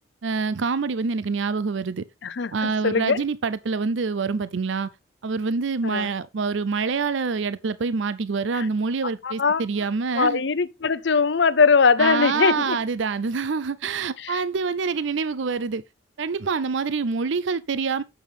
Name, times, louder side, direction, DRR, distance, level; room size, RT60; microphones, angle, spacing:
voice 1, 0.2-2.0 2.5-4.9 5.2-10.4 12.0-15.8 16.2-18.0, right 4 dB, 70° right, 0.5 m, -26 dB
voice 2, 2.2-3.2 5.8-6.1 8.5-8.7 9.2-9.6 10.1-12.8 14.2-14.4, left 5 dB, 60° left, 0.6 m, -21 dB
8.7 x 7.0 x 3.4 m
head